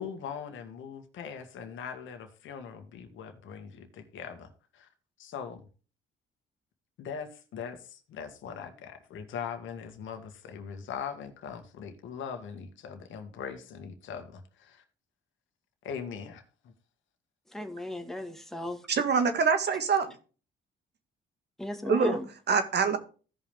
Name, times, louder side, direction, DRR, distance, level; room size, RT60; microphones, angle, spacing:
voice 1, 0.0-4.9 5.2-5.7 7.0-14.8 15.8-16.7, left 7 dB, 80° left, 6 dB, 1.9 m, -41 dB
voice 2, 17.5-18.8 21.6-22.3, left 2 dB, ahead, 4 dB, 2.0 m, -35 dB
voice 3, 18.9-20.1 21.9-22.2 22.5-23.0, right 5 dB, 60° right, 8 dB, 1.9 m, -25 dB
16.0 x 5.6 x 3.5 m, 0.36 s
cardioid pair, 90°, 20 cm